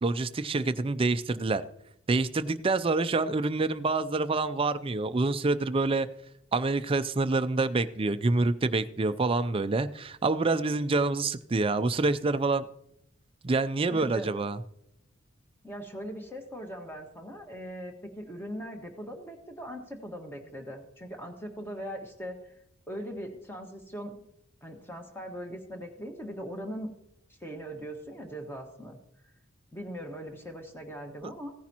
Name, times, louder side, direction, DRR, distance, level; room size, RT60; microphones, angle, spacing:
voice 1, 0.0-1.6 2.1-6.1 6.5-12.7 13.4-14.6, right 3 dB, 25° right, 12 dB, 0.4 m, -27 dB
voice 2, 13.9-14.3 15.6-22.5 22.9-24.1 24.6-26.9 27.4-29.0 29.7-31.5, equal, 10° left, 3 dB, 1.5 m, -40 dB
16.0 x 10.0 x 2.9 m, 0.76 s
head